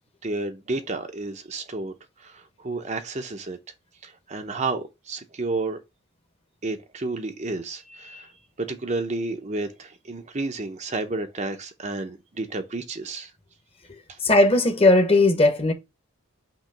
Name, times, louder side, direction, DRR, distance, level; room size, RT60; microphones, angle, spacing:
voice 1, 0.2-3.6 4.0-5.8 6.6-13.3 14.1-14.2, right 3 dB, 30° right, 0.7 m, -31 dB
voice 2, 14.2-15.7, left 2 dB, 25° left, 1.1 m, -17 dB
5.9 x 3.1 x 5.6 m
head